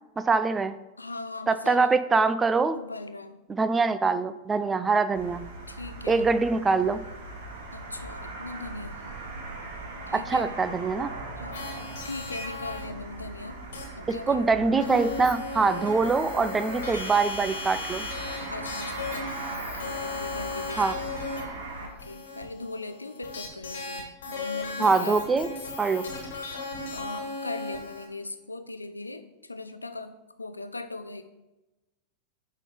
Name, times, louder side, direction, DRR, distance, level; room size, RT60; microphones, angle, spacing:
voice 1, 0.2-0.7 1.5-2.8 3.5-5.4 6.1-7.0 10.1-11.1 14.3-18.1 20.8-20.9 24.8-25.5 25.8-26.1, right 4 dB, 15° right, 12 dB, 0.4 m, -24 dB
voice 2, 1.0-1.9 2.7-3.4 5.7-6.3 7.7-9.1 10.1-10.6 11.4-13.6 14.0-14.5 18.5-21.0 21.8-25.2 26.9-30.1 30.4-31.2, left 2 dB, 80° left, 9 dB, 0.5 m, -39 dB
sound 1, 5.1-21.9, right 2 dB, 55° right, 2.0 m, -39 dB
sound 2, 11.5-12.9 13.7-13.8 14.1-14.2 14.8-28.1, left 3 dB, 60° left, 1.5 m, -36 dB
8.3 x 3.8 x 5.0 m, 1.0 s
figure-of-eight pair, 90°, 0 cm